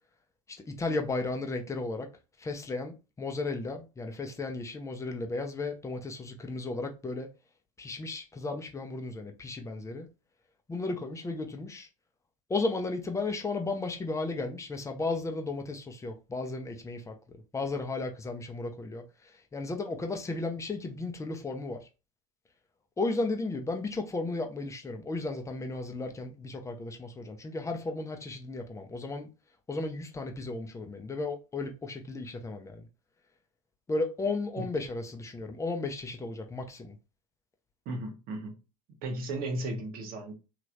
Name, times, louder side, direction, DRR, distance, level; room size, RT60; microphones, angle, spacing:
voice 1, 0.7-2.1 2.4-7.3 7.8-10.1 10.7-11.9 12.5-21.9 23.0-29.3 29.7-32.9 33.9-37.0, left 3 dB, 15° left, 0.7 m, -34 dB
voice 2, 37.8-38.5 39.0-40.3, right 2 dB, 55° right, 1.1 m, -35 dB
3.0 x 2.9 x 2.5 m
hypercardioid pair, 90°, 19 cm